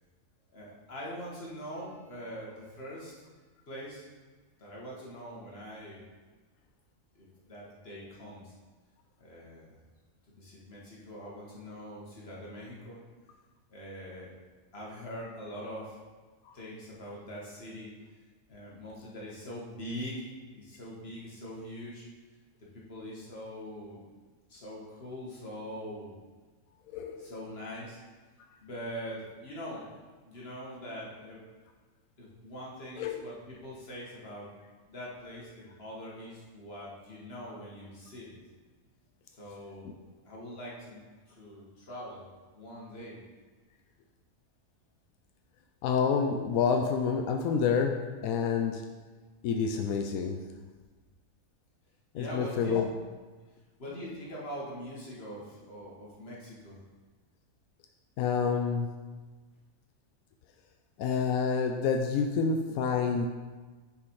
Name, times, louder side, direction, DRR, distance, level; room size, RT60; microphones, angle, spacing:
voice 1, 0.5-3.1 3.7-4.1 4.6-6.0 7.2-8.5 9.2-9.7 10.3-13.0 13.7-14.3 14.7-16.0 16.5-17.9 18.5-22.1 22.7-24.0 24.5-26.2 27.2-28.0 28.6-29.9 30.3-31.4 32.2-34.5 34.9-38.4 39.4-40.0 40.2-41.0 41.4-42.3 42.5-43.2 52.1-52.8 53.8-56.8, equal, 45° left, -5 dB, 2.0 m, -43 dB
voice 2, 45.8-48.9 49.4-50.6 52.1-52.9 58.2-59.1 61.0-63.3, left 6 dB, 90° left, 4 dB, 1.0 m, -28 dB
6.8 x 5.1 x 4.7 m, 1.3 s
omnidirectional pair, 1.4 m